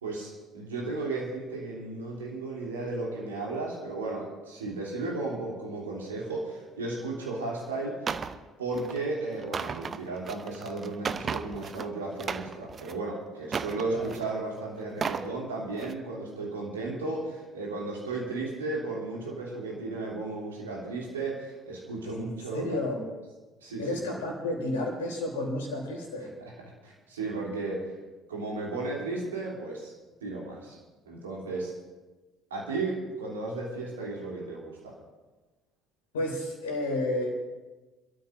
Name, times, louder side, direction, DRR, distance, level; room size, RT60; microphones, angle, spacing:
voice 1, 0.0-8.2 8.6-22.8 23.6-23.8 26.4-26.5 26.8-27.9 28.3-29.9 30.2-30.8 31.1-31.7 32.5-34.9, right 3 dB, 75° right, -3 dB, 3.0 m, -34 dB
sound 1, 8.1-8.4 8.7-9.0 9.4-11.9 12.2-13.0 13.5-14.3 14.8-15.3 15.7-15.9, right 6 dB, 35° right, 0.6 m, -34 dB
voice 2, 22.1-23.0 23.8-26.3 36.1-37.3, left 1 dB, 75° left, 0 dB, 3.4 m, -31 dB
28.0 x 13.0 x 2.6 m, 1.2 s
figure-of-eight pair, 55°, 0 cm